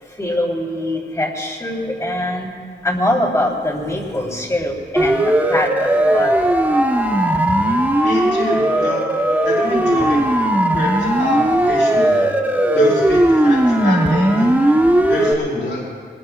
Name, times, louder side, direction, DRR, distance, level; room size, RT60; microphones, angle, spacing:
voice 1, 0.2-2.4 2.8-6.6, left 1 dB, 15° left, -2 dB, 3.2 m, -23 dB
Siren, 5.0-15.3, right 1 dB, 10° right, 1.1 m, -17 dB
voice 2, 8.0-9.1 9.4-10.2 10.7-12.3 12.7-14.3 15.1-15.9, left 2 dB, 80° left, -5 dB, 5.1 m, -25 dB
24.5 x 20.0 x 2.4 m, 2.1 s
wide cardioid pair, 130°, 19 cm